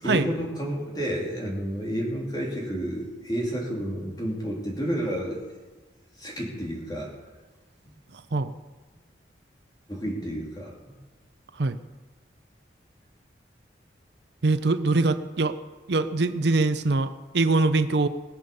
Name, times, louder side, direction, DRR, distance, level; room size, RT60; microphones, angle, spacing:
voice 1, 0.0-5.4 6.2-7.1 9.9-10.9, right 1 dB, 20° left, -2 dB, 3.1 m, -30 dB
voice 2, 14.4-15.6 15.9-18.1, right 3 dB, 70° right, 11 dB, 0.6 m, -23 dB
20.5 x 7.0 x 6.9 m, 1.3 s
head